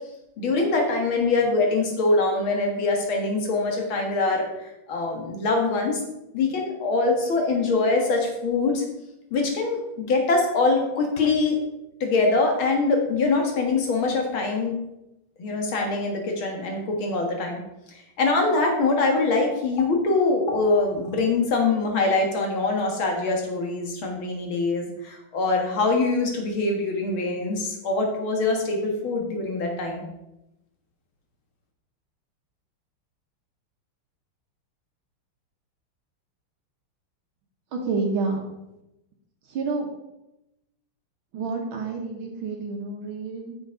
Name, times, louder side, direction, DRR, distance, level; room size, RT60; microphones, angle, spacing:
voice 1, 0.4-6.0 6.3-8.8 9.3-11.6 12.0-14.8 15.4-17.6 17.9-30.0, left 3 dB, 70° left, 2 dB, 2.5 m, -23 dB
voice 2, 37.7-38.4 39.5-39.9 41.3-43.5, right 4 dB, 75° right, 1 dB, 2.0 m, -29 dB
9.0 x 6.4 x 5.2 m, 0.91 s
omnidirectional pair, 2.3 m